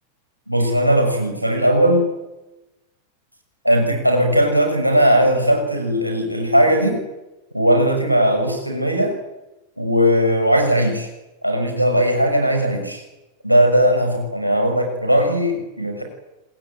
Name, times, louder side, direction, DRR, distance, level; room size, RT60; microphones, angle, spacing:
voice 1, 0.5-2.1 3.6-7.0 7.5-9.1 9.8-11.1 11.4-13.0 13.4-16.0, equal, 90° right, 3 dB, 6.7 m, -18 dB
27.5 x 20.5 x 9.1 m, 1.0 s
figure-of-eight pair, 90°, 0 cm